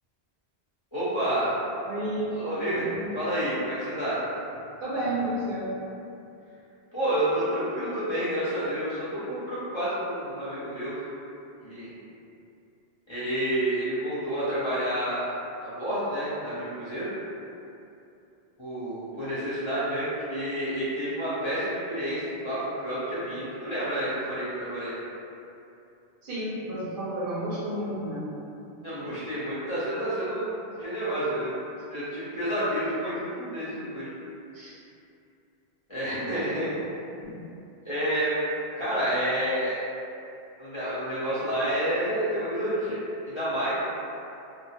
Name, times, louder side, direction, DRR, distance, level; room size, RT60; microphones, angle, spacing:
voice 1, 0.9-1.6 2.3-2.9 3.1-4.2 6.9-11.0 11.6-11.9 13.1-15.3 15.6-17.1 18.6-24.9 28.8-31.5 31.9-34.1 35.9-36.9 37.8-38.4 38.8-39.9 40.6-43.0 43.3-43.7, right 1 dB, 35° left, -12 dB, 0.5 m, -29 dB
voice 2, 1.8-3.1 4.8-5.7 26.2-28.2 34.5-34.7 37.2-37.4, right 1 dB, 65° right, -8 dB, 0.7 m, -31 dB
2.2 x 2.0 x 2.8 m, 2.7 s
omnidirectional pair, 1.1 m